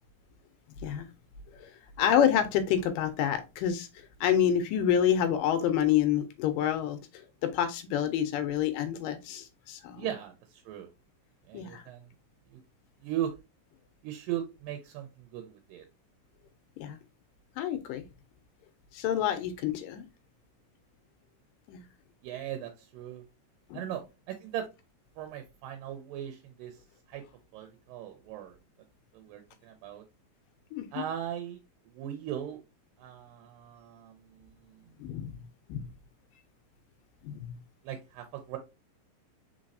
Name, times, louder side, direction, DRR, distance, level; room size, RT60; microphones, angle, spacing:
voice 1, 2.0-10.1 11.5-11.8 16.8-17.0 17.6-18.1 18.9-20.0 21.7-21.9 23.7-23.8 30.7-30.9 35.0-35.4 35.7-35.9 37.2-37.6, left 9 dB, 80° left, 9 dB, 2.2 m, -28 dB
voice 2, 10.0-10.9 11.5-12.1 12.5-12.6 13.0-13.3 14.0-15.9 22.2-23.3 23.7-24.7 25.2-27.2 27.5-28.6 29.1-30.0 30.9-31.6 31.9-32.6 33.0-34.9 37.8-38.6, right 11 dB, 85° right, 6 dB, 2.3 m, -38 dB
4.6 x 4.0 x 2.5 m, 0.26 s
omnidirectional pair, 4.0 m